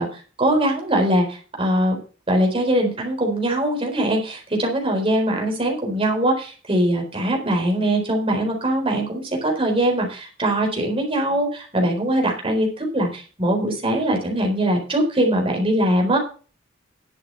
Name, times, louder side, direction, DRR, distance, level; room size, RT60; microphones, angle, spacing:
voice 1, 0.0-2.0 2.3-16.2, right 1 dB, 30° right, 1 dB, 4.1 m, -22 dB
11.0 x 7.5 x 5.5 m, 0.37 s
head